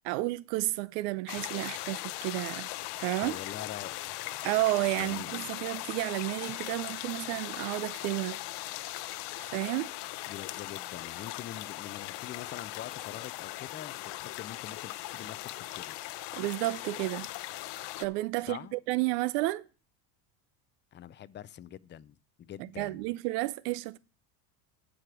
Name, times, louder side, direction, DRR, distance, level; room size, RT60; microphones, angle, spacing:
voice 1, 0.0-2.7 3.0-3.4 4.4-8.4 9.4-9.9 16.3-17.3 18.0-19.6 22.6-24.0, right 19 dB, 75° right, 0.6 m, -31 dB
sound 1, 1.3-18.1, left 17 dB, 55° left, 0.8 m, -39 dB
voice 2, 3.2-4.2 5.0-5.5 10.3-15.5 15.7-16.0 18.5-18.7 20.9-23.1, left 11 dB, 25° left, 0.4 m, -44 dB
sound 2, 16.2-18.8, right 2 dB, 40° right, 3.5 m, -62 dB
12.5 x 5.1 x 6.0 m
supercardioid pair, 110°, 47 cm